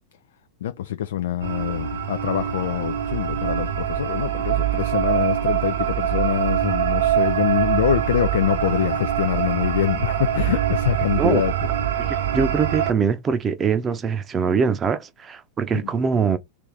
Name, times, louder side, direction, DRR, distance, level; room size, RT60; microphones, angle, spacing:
voice 1, 0.6-11.5, left 11 dB, 60° left, 0.4 m, -24 dB
sound 1, 1.4-12.9, right 10 dB, 60° right, 1.0 m, -24 dB
voice 2, 12.0-16.4, right 6 dB, 25° right, 0.8 m, -23 dB
3.5 x 3.4 x 4.4 m
figure-of-eight pair, 90°, 0 cm